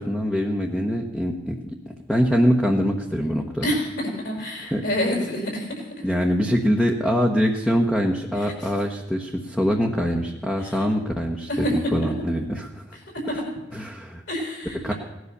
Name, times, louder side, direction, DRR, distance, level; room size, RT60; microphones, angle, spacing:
voice 1, 0.0-1.5 1.9-3.7 4.7-4.8 6.0-12.8 13.7-14.2 14.8-14.9, equal, 5° left, 0 dB, 1.2 m, -23 dB
voice 2, 4.2-5.9 8.3-8.7 10.6-10.9 11.5-12.1 13.3-13.4 14.3-14.9, equal, 65° left, 1 dB, 5.4 m, -27 dB
17.5 x 11.0 x 6.7 m, 1.0 s
head